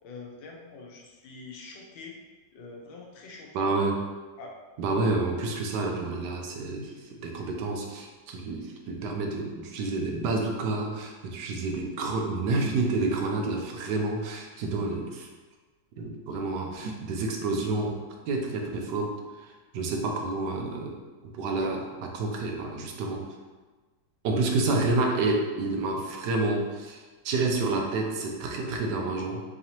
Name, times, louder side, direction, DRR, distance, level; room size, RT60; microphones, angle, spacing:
voice 1, 0.0-2.2 2.5-3.7 4.4-4.5, left 4 dB, 75° left, -1 dB, 1.4 m, -45 dB
voice 2, 3.5-4.0 4.8-15.3 16.0-18.0 18.3-19.1 19.7-21.0 21.2-23.3 24.2-29.4, right 3 dB, 75° right, 1 dB, 1.1 m, -29 dB
4.7 x 2.8 x 2.9 m, 1.3 s
omnidirectional pair, 2.1 m